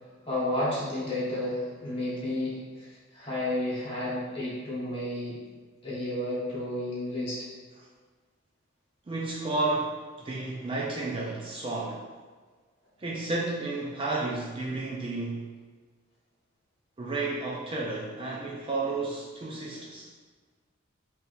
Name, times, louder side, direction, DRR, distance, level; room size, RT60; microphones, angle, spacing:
voice 1, 0.2-5.4 5.8-7.5, left 1 dB, 30° left, -8 dB, 1.2 m, -31 dB
voice 2, 9.1-12.1 13.0-15.5 17.0-20.1, right 2 dB, 25° right, -4 dB, 0.3 m, -32 dB
3.4 x 2.8 x 2.5 m, 1.4 s
head